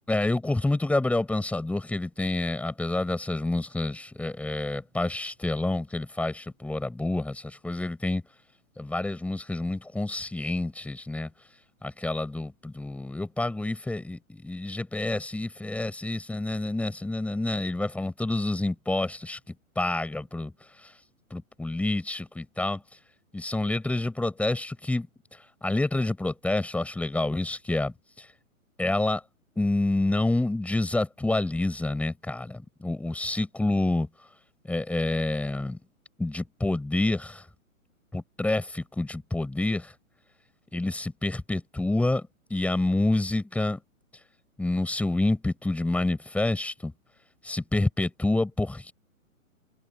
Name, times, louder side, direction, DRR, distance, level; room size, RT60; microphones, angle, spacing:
voice 1, 0.1-8.2 8.8-11.3 11.8-19.4 19.8-20.5 20.8-20.9 21.3-22.8 23.3-25.1 25.6-28.3 28.8-29.2 29.6-34.1 34.7-35.8 36.2-37.5 38.1-39.9 40.7-43.8 44.6-46.9 47.4-48.9, left 2 dB, 5° left, 7.4 m, -28 dB
figure-of-eight pair, 125°, 43 cm